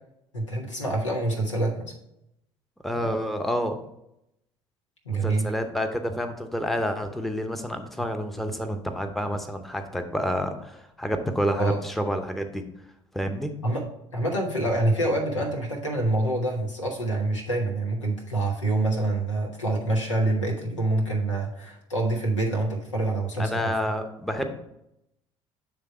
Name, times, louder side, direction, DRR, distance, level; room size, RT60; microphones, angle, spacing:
voice 1, 0.3-1.9 5.0-5.5 11.6-11.8 13.6-13.9 14.1-23.7, right 2 dB, 90° left, 0 dB, 1.1 m, -26 dB
voice 2, 2.8-3.8 5.1-12.6 13.1-13.5 23.4-24.5, equal, ahead, 6 dB, 0.8 m, -29 dB
7.6 x 3.4 x 4.7 m, 0.81 s
figure-of-eight pair, 60°, 15 cm